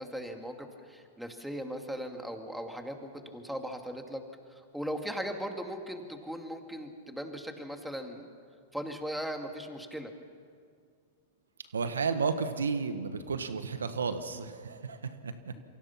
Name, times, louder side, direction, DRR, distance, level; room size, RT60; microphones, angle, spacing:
voice 1, 0.0-4.2 4.5-8.3 8.7-10.1, equal, ahead, 4 dB, 2.4 m, -38 dB
voice 2, 11.7-15.5, right 5 dB, 90° right, 10 dB, 1.5 m, -32 dB
28.0 x 24.0 x 5.9 m, 2.1 s
hypercardioid pair, 110°, 0 cm